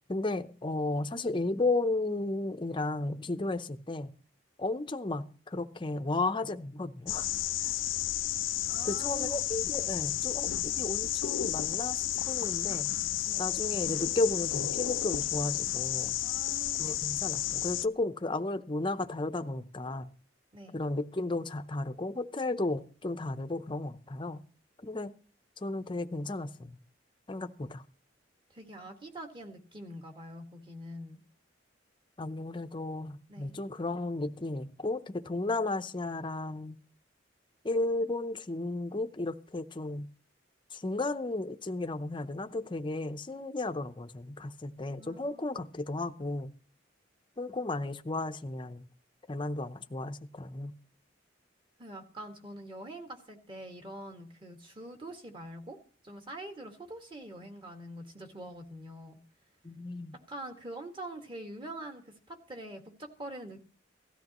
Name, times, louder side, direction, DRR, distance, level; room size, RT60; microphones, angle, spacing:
voice 1, 0.1-4.1 4.6-7.3 8.8-12.9 13.4-16.2 16.8-20.1 20.7-24.4 24.8-25.1 25.6-26.8 27.3-27.8 32.2-36.8 37.6-40.1 40.7-46.5 47.4-48.9 49.3-50.7 59.6-60.1, left 2 dB, 25° left, 0.7 m, -34 dB
sound 1, 7.1-17.9, left 13 dB, 85° left, 0.5 m, -32 dB
voice 2, 8.7-9.4 13.3-13.4 16.2-17.0 20.5-20.8 28.5-31.2 33.3-33.6 45.0-45.5 51.8-55.8 56.0-59.2 60.3-63.6, right 1 dB, 25° right, 1.9 m, -44 dB
17.5 x 13.0 x 3.0 m
head